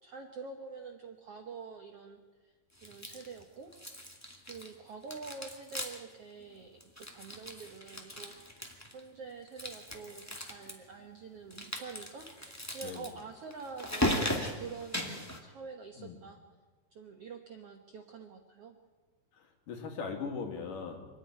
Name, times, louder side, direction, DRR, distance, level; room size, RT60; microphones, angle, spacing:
voice 1, 0.0-2.5 2.8-3.7 4.5-8.7 8.9-16.4 16.9-18.8, right 5 dB, 65° right, 4 dB, 1.5 m, -46 dB
sound 1, 2.8-3.4 3.7-4.8 5.0-6.1 6.4-6.5 6.8-9.0 9.5-10.7 11.5-15.4, left 1 dB, 10° left, 1.0 m, -37 dB
voice 2, 19.4-21.1, left 5 dB, 60° left, 3 dB, 3.6 m, -39 dB
26.0 x 10.0 x 10.0 m, 1.3 s
omnidirectional pair, 4.3 m